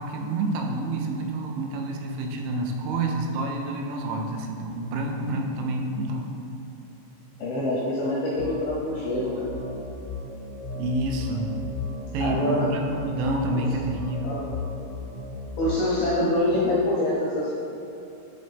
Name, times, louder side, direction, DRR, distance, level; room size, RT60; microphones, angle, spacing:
voice 1, 0.0-6.3 10.7-11.5 12.1-14.4, right 2 dB, 80° right, 1 dB, 3.0 m, -28 dB
voice 2, 7.4-9.4 12.2-12.7 13.5-13.6 14.2-14.5 15.6-17.5, left 1 dB, 80° left, -6 dB, 2.2 m, -25 dB
sound 1, 8.4-15.7, left 3 dB, 60° right, 1.9 m, -36 dB
10.5 x 4.0 x 3.4 m, 2.9 s
omnidirectional pair, 5.5 m